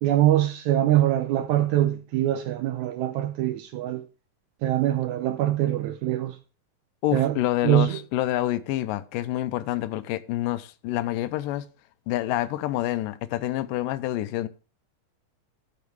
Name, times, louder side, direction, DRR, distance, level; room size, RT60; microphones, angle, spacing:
voice 1, 0.0-4.0 4.6-6.4 7.1-7.4 7.6-8.0, right 13 dB, 75° right, 1.8 m, -23 dB
voice 2, 7.0-11.7 12.1-14.5, left 14 dB, 85° left, 2.3 m, -27 dB
12.5 x 5.1 x 4.6 m
omnidirectional pair, 3.9 m